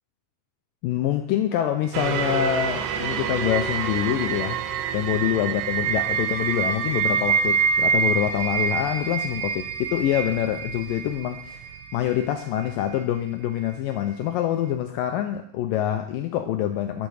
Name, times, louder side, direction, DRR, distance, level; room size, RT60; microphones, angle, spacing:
voice 1, 0.8-4.6 4.9-9.6 9.9-17.1, left 11 dB, 85° left, 7 dB, 1.9 m, -26 dB
sound 1, 1.9-13.0 13.6-13.7, right 6 dB, 85° right, 2.8 m, -26 dB
11.5 x 9.1 x 4.9 m, 0.66 s
omnidirectional pair, 4.7 m